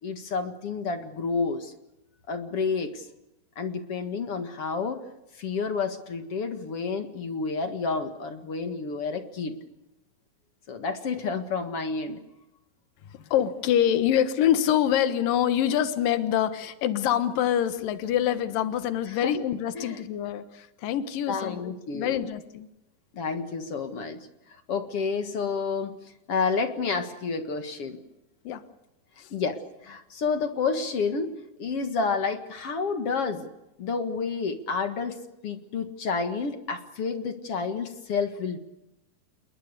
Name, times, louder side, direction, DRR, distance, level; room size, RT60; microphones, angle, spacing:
voice 1, 0.0-1.7 2.3-3.1 3.6-5.0 5.3-9.5 10.7-12.2 19.2-19.4 19.8-20.0 21.3-22.2 23.1-24.2 24.5-26.0 26.3-28.0 29.3-31.3 31.6-33.5 33.8-35.2 35.4-38.6, left 5 dB, 50° left, 7 dB, 2.3 m, -30 dB
voice 2, 13.1-22.7 28.4-28.6 29.2-29.3, left 10 dB, 75° left, 11 dB, 3.0 m, -25 dB
29.0 x 21.0 x 6.7 m, 0.92 s
omnidirectional pair, 4.0 m